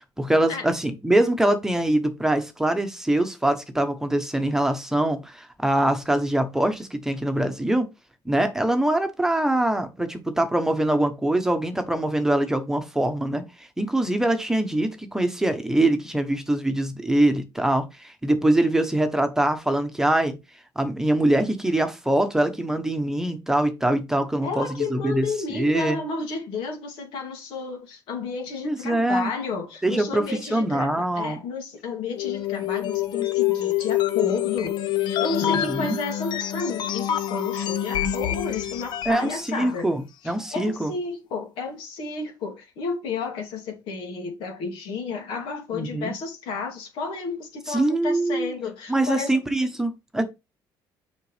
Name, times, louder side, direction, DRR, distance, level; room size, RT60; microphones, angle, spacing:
voice 1, 0.2-7.9 8.2-20.4 20.8-26.0 28.6-29.3 29.8-30.2 30.5-31.4 35.4-36.0 39.1-40.9 45.7-46.1 47.7-48.5 48.9-50.2, right 1 dB, 5° right, 1.0 m, -23 dB
voice 2, 24.4-39.9 40.5-49.4, left 4 dB, 85° left, 2.7 m, -32 dB
sound 1, 32.2-39.3, left 12 dB, 60° left, 0.8 m, -26 dB
6.7 x 5.2 x 3.3 m
cardioid pair, 120°, 9 cm